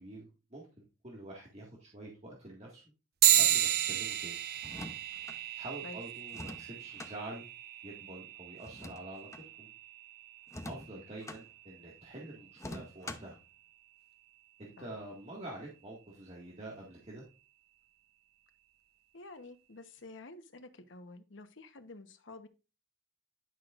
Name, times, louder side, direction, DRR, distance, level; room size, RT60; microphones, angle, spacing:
voice 1, 0.0-2.8 3.4-4.4 5.6-7.4 7.8-9.3 9.6-9.7 10.7-13.4 14.6-17.3, right 1 dB, 35° right, -3 dB, 1.8 m, -47 dB
sound 1, 3.2-13.0, right 13 dB, 55° right, 0.6 m, -33 dB
sound 2, 4.6-5.4 6.3-7.1 8.6-9.5 10.5-11.4 12.6-13.4, left 1 dB, 15° left, 0.7 m, -45 dB
voice 2, 19.1-22.5, left 2 dB, 85° left, 9 dB, 1.0 m, -50 dB
11.0 x 6.2 x 2.5 m, 0.30 s
head